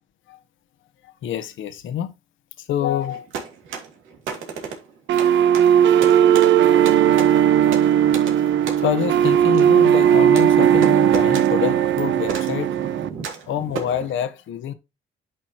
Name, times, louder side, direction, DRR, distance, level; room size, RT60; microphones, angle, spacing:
voice 1, 1.2-2.1 2.6-3.5 8.8-12.8 13.5-14.7, left 10 dB, 80° left, 1.3 m, -27 dB
sound 1, 3.0-14.1, right 6 dB, 85° right, 2.4 m, -34 dB
sound 2, 5.1-13.1, right 9 dB, 70° right, 0.8 m, -17 dB
10.0 x 6.3 x 3.0 m
cardioid pair, 90°, 20 cm